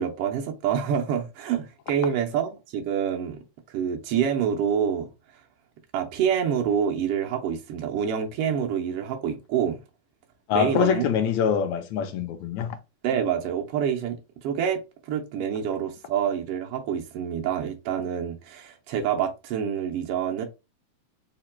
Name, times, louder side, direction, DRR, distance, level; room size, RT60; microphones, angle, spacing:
voice 1, 0.0-3.4 3.7-5.1 5.9-9.8 10.5-11.0 13.0-20.4, right 8 dB, 85° right, 1.3 m, -27 dB
voice 2, 10.5-12.8, left 8 dB, 75° left, 1.7 m, -24 dB
4.8 x 2.2 x 4.3 m
omnidirectional pair, 3.5 m